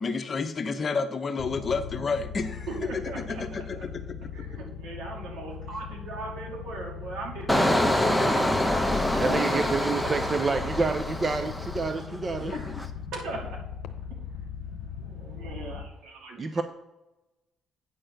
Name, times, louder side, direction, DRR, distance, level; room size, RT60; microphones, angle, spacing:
voice 1, 0.0-2.7 2.9-4.0 4.4-4.5 12.4-12.6, left 4 dB, 40° left, 8 dB, 0.9 m, -30 dB
sound 1, 1.4-15.9, left 7 dB, 85° left, 0.8 m, -39 dB
voice 2, 2.7-3.8 4.3-10.4 12.5-12.7 13.1-13.6 15.0-16.6, right 3 dB, 80° right, 0 dB, 2.6 m, -39 dB
Engine, 7.5-12.1 12.5-12.9, left 1 dB, 5° left, 0.9 m, -26 dB
voice 3, 9.2-12.5 16.4-16.6, right 4 dB, 35° right, 8 dB, 0.7 m, -28 dB
9.0 x 4.4 x 6.6 m, 0.98 s
cardioid pair, 80°, 0 cm